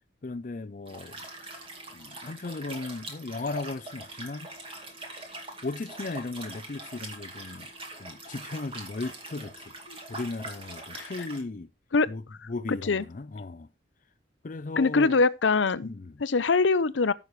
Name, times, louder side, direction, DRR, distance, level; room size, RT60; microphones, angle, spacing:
voice 1, 0.2-1.2 1.9-4.5 5.6-7.7 8.0-9.7 10.1-11.7 12.1-12.2 12.5-13.7 14.4-15.2 15.8-16.1, left 3 dB, 45° left, 0.5 m, -36 dB
Liquid, 0.9-11.4, right 2 dB, 30° right, 2.4 m, -43 dB
voice 2, 12.7-13.0 14.8-15.9 16.2-17.1, left 4 dB, 85° left, 0.7 m, -23 dB
15.0 x 6.4 x 3.2 m
head